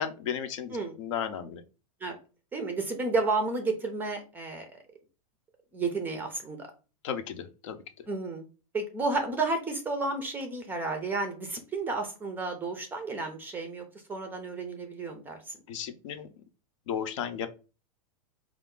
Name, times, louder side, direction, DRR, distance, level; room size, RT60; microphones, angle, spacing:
voice 1, 0.0-1.6 7.0-7.8 15.7-16.3 16.9-17.5, left 8 dB, 55° left, 9 dB, 0.7 m, -34 dB
voice 2, 2.5-4.8 5.7-6.7 8.1-8.5 8.7-13.8 14.1-15.5, right 3 dB, 10° right, 5 dB, 0.5 m, -32 dB
4.3 x 2.5 x 3.6 m, 0.32 s
supercardioid pair, 160°, 19 cm